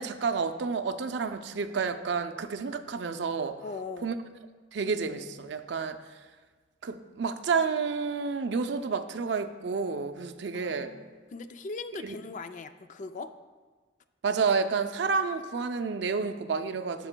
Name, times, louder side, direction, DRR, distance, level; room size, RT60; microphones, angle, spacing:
voice 1, 0.0-3.6 4.0-4.1 4.7-6.0 6.8-10.9 12.0-12.2 14.2-17.1, right 5 dB, 65° right, 9 dB, 0.4 m, -30 dB
voice 2, 3.6-4.1 10.5-13.3, left 3 dB, 40° left, 10 dB, 0.3 m, -40 dB
13.0 x 6.9 x 2.2 m, 1.4 s
head